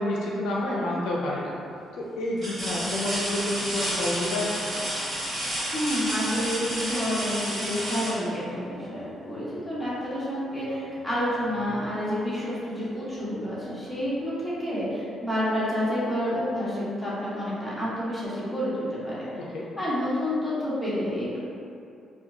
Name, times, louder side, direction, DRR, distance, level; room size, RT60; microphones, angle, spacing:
voice 1, 0.0-1.5 2.0-4.7 19.4-19.7, left 1 dB, 85° left, -3 dB, 0.5 m, -29 dB
sound 1, 0.6-1.1 1.7-1.8 2.4-9.1 10.8-11.0 11.4-12.5 13.8-13.9, equal, 30° right, 1.1 m, -32 dB
voice 2, 5.7-19.3 19.8-21.4, equal, ahead, -11 dB, 1.4 m, -29 dB
4.2 x 2.2 x 2.7 m, 2.5 s
cardioid pair, 90°, 0 cm